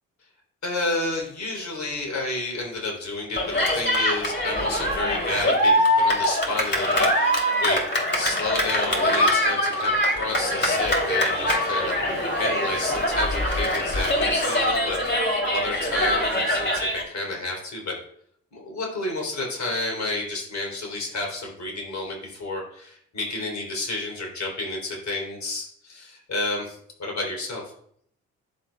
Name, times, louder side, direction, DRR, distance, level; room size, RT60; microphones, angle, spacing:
voice 1, 0.6-7.8 8.1-18.0 18.5-27.6, left 2 dB, 45° left, -1 dB, 3.4 m, -30 dB
Cheering, 3.4-17.0, left 1 dB, 30° left, 2.9 m, -23 dB
10.5 x 7.3 x 2.3 m, 0.66 s
figure-of-eight pair, 40°, 38 cm